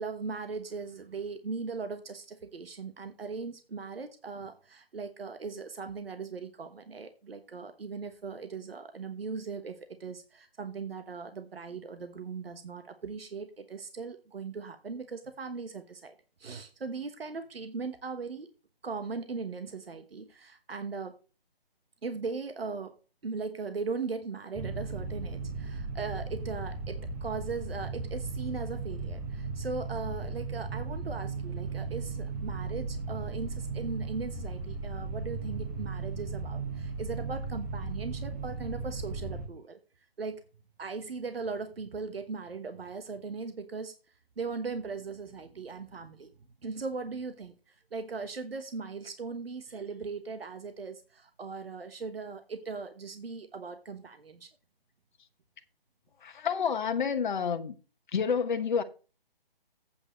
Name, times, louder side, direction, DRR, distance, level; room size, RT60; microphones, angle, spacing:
voice 1, 0.0-18.5 18.8-21.2 22.0-22.9 23.2-39.8 40.2-40.4 40.8-43.9 44.4-46.3 46.6-47.5 47.9-54.5, right 4 dB, 75° right, 1.3 m, -39 dB
sound 1, 24.5-39.5, right 4 dB, 15° right, 1.0 m, -36 dB
voice 2, 56.2-57.7 58.1-58.8, left 6 dB, 55° left, 1.1 m, -29 dB
8.7 x 4.8 x 6.6 m
figure-of-eight pair, 150°, 29 cm